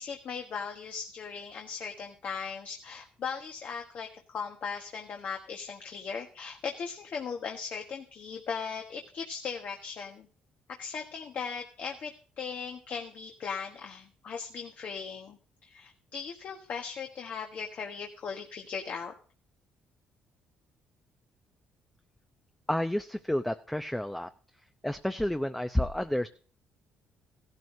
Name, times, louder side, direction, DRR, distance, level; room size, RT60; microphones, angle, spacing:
voice 1, 0.0-10.3 10.8-19.1, left 6 dB, 55° left, 2 dB, 1.4 m, -38 dB
voice 2, 22.7-24.3 24.8-26.3, left 1 dB, 5° left, 8 dB, 0.6 m, -30 dB
15.5 x 12.0 x 2.7 m, 0.42 s
supercardioid pair, 75°, 3 cm